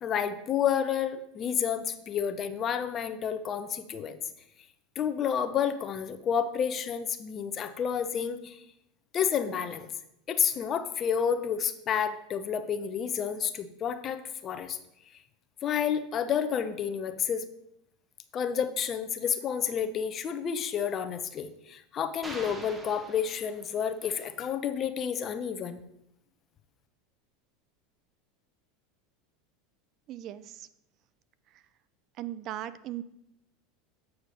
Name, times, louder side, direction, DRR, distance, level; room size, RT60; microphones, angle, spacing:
voice 1, 0.0-4.2 5.0-8.6 9.1-9.9 10.3-14.8 15.6-17.4 18.3-25.8, left 8 dB, 40° left, 9 dB, 0.8 m, -30 dB
sound 1, 22.2-24.0, right 1 dB, 15° right, 1.3 m, -44 dB
voice 2, 30.1-30.7 31.5-31.6 32.2-33.0, right 13 dB, 50° right, 15 dB, 0.4 m, -38 dB
8.4 x 4.7 x 5.1 m, 0.81 s
hypercardioid pair, 95°, 0 cm